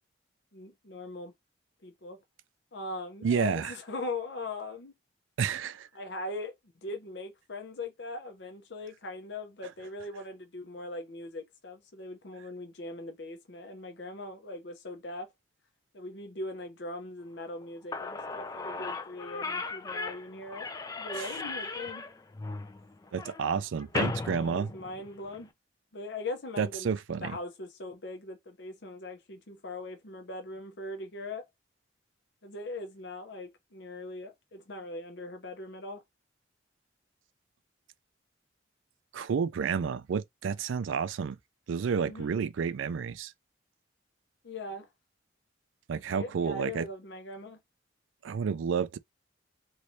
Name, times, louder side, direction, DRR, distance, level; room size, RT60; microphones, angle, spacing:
voice 1, 0.5-1.3 1.8-2.2 2.7-4.9 5.9-6.6 6.8-15.3 15.9-20.7 21.0-22.0 24.4-25.5 25.9-26.9 27.2-31.5 32.4-36.0 42.0-42.3 44.4-44.9 46.1-47.6, left 2 dB, 65° left, 0.7 m, -40 dB
voice 2, 3.2-3.8 5.4-5.9 21.1-21.3 23.1-24.7 26.6-27.4 39.1-41.4 41.7-43.3 45.9-46.9 48.2-49.0, right 6 dB, 80° right, 0.4 m, -30 dB
Slam / Squeak, 17.6-17.7 17.9-25.4, left 3 dB, 20° left, 0.3 m, -37 dB
3.3 x 3.1 x 2.7 m
head